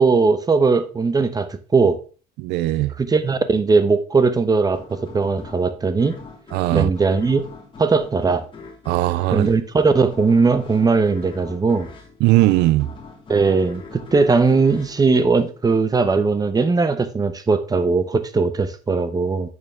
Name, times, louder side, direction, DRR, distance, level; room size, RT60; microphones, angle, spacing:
voice 1, 0.0-2.0 3.0-6.1 6.7-7.4 7.8-8.4 9.3-11.9 13.3-19.5, right 4 dB, 20° right, 1.0 m, -19 dB
voice 2, 2.4-2.9 6.5-6.9 8.9-9.5 12.2-12.9, right 17 dB, 85° right, 0.4 m, -18 dB
sound 1, 4.7-16.0, left 4 dB, 30° left, 2.3 m, -42 dB
8.7 x 6.8 x 3.4 m
cardioid pair, 110°, 17 cm